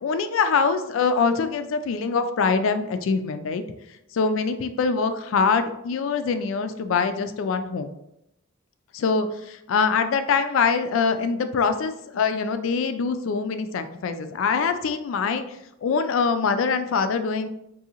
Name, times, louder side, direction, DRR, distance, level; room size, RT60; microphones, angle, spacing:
voice 1, 0.0-3.6 4.1-7.9 8.9-15.4 15.8-17.5, left 5 dB, 70° left, 10 dB, 0.3 m, -24 dB
3.7 x 2.6 x 2.8 m, 0.83 s
head